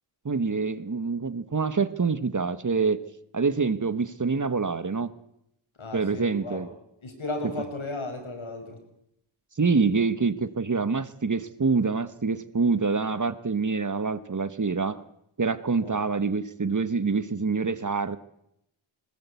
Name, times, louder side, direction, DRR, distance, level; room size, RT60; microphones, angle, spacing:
voice 1, 0.2-3.0 3.3-5.1 5.9-6.7 7.4-7.5 9.6-15.0 15.4-18.2, right 4 dB, 40° right, 15 dB, 1.1 m, -26 dB
voice 2, 5.8-6.7 7.0-8.8 15.8-16.0, left 2 dB, 70° left, 5 dB, 5.3 m, -35 dB
21.0 x 20.0 x 8.2 m, 0.79 s
wide cardioid pair, 100°, 49 cm